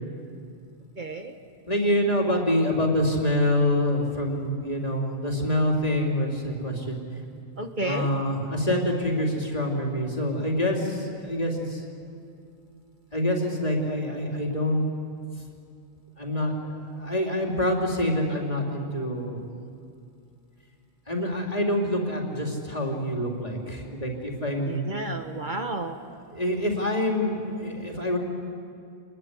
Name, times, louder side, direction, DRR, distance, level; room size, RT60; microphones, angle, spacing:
voice 1, 1.0-1.3 7.6-8.1 24.7-26.0, right 2 dB, 45° right, 5 dB, 1.4 m, -31 dB
voice 2, 1.7-7.0 7.8-11.8 13.1-14.8 16.2-19.4 21.1-24.9 26.3-28.2, left 1 dB, 35° left, 0 dB, 3.8 m, -26 dB
28.5 x 21.0 x 9.8 m, 2.4 s
omnidirectional pair, 1.1 m